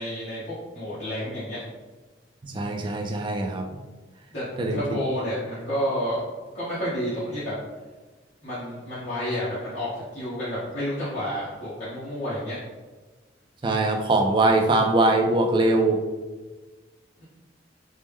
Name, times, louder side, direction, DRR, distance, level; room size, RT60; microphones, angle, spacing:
voice 1, 0.0-1.6 4.3-6.2 6.5-7.5 8.4-12.6 17.2-17.3, equal, 75° left, -13 dB, 1.3 m, -30 dB
voice 2, 2.4-3.7 4.6-4.8 13.6-16.0, right 2 dB, 25° right, 3 dB, 0.4 m, -22 dB
4.3 x 2.1 x 3.5 m, 1.3 s
head